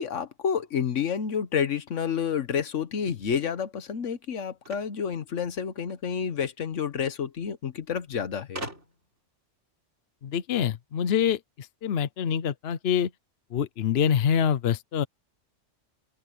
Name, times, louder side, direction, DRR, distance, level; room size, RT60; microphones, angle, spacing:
voice 1, 0.0-8.6, left 7 dB, 85° left, 1.4 m, -29 dB
sound 1, 4.6-6.0 7.1-7.2 7.5-7.6 8.5-9.2, right 1 dB, 70° right, 5.1 m, -41 dB
voice 2, 10.2-13.1 13.5-15.0, left 8 dB, 60° left, 1.0 m, -26 dB
omnidirectional pair, 1.2 m